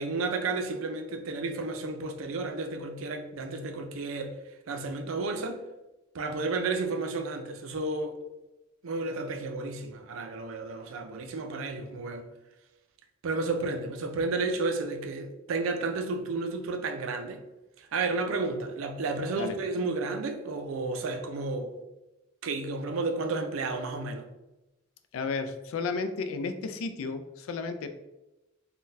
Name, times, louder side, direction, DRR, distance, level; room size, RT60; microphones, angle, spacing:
voice 1, 0.0-4.4 4.7-5.6 6.1-8.2 8.8-12.3 13.2-17.4 17.8-21.7 22.4-24.3, right 3 dB, 80° right, 0.4 m, -32 dB
voice 2, 25.1-27.9, left 4 dB, 80° left, 0.3 m, -33 dB
3.8 x 2.2 x 2.6 m
head